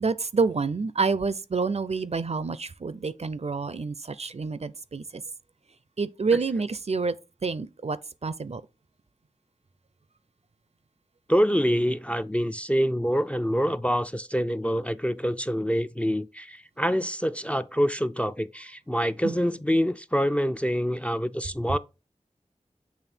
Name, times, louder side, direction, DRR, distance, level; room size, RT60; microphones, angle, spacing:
voice 1, 0.0-5.2 6.0-7.1 7.4-8.6 19.2-19.4, right 4 dB, 55° right, 0.4 m, -28 dB
voice 2, 11.3-21.8, equal, 10° left, 0.3 m, -26 dB
7.1 x 3.1 x 4.4 m
wide cardioid pair, 45°, 13 cm